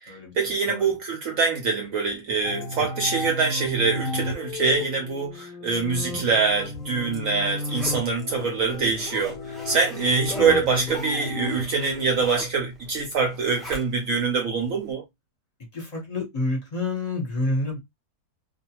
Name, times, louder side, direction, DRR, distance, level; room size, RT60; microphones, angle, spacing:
voice 1, 0.0-15.0, right 4 dB, 65° right, 0.9 m, -24 dB
sound 1, 2.4-11.6, left 2 dB, 65° left, 0.9 m, -33 dB
Zipper (clothing), 6.6-14.2 14.7-14.8, equal, ahead, 0.4 m, -42 dB
voice 2, 15.7-17.8, left 2 dB, 30° left, 0.9 m, -28 dB
2.5 x 2.3 x 2.8 m
omnidirectional pair, 1.7 m